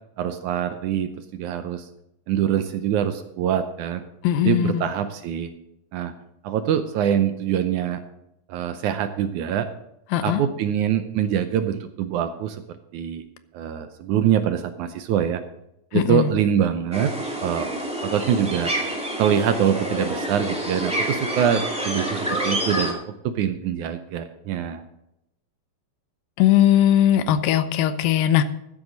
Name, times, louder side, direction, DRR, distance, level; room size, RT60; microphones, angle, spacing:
voice 1, 0.2-1.9 2.3-4.0 4.4-5.5 5.9-6.1 6.4-8.0 8.5-9.7 10.2-13.2 13.5-15.4 15.9-17.1 17.4-17.7 18.0-18.7 19.2-24.8, right 9 dB, 75° right, 9 dB, 1.9 m, -24 dB
voice 2, 4.2-4.9 10.1-10.4 15.9-16.3 26.4-28.4, left 11 dB, 85° left, 12 dB, 2.6 m, -19 dB
sound 1, 16.9-22.9, right 1 dB, ahead, 1.7 m, -28 dB
14.0 x 10.5 x 4.0 m, 0.82 s
omnidirectional pair, 4.0 m